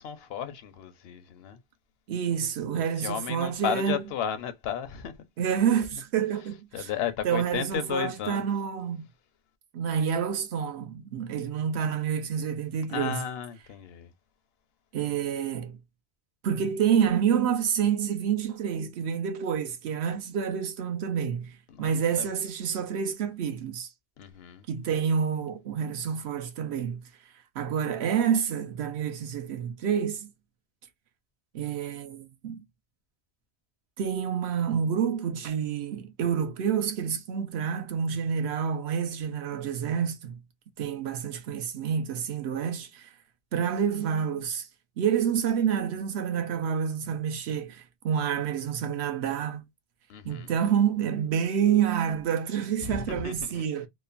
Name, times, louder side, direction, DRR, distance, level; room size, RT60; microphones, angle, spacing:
voice 1, 0.0-1.6 2.7-5.1 6.7-8.4 12.9-14.1 21.7-21.9 22.2-22.3 24.2-24.6 50.1-50.5 52.8-53.6, left 8 dB, 75° left, 0.8 m, -34 dB
voice 2, 2.1-4.0 5.4-6.9 7.2-9.0 9.7-13.2 14.9-15.8 16.4-23.9 24.7-27.0 27.5-30.3 31.5-32.6 34.0-40.4 40.8-43.1 43.5-44.7 45.0-49.6 50.2-53.9, right 8 dB, 85° right, 0.9 m, -28 dB
3.0 x 2.1 x 2.3 m
omnidirectional pair, 1.1 m